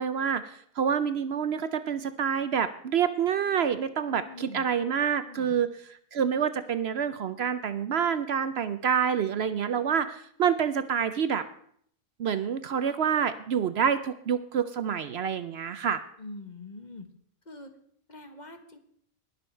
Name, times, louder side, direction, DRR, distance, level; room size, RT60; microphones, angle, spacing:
voice 1, 0.0-5.7 6.1-11.4 12.2-16.0, right 7 dB, 60° right, 12 dB, 0.8 m, -27 dB
voice 2, 4.1-4.7 5.3-5.5 16.2-17.1 17.5-17.7 18.1-18.8, left 2 dB, 35° left, 7 dB, 1.3 m, -44 dB
20.0 x 7.0 x 4.5 m, 0.65 s
omnidirectional pair, 1.3 m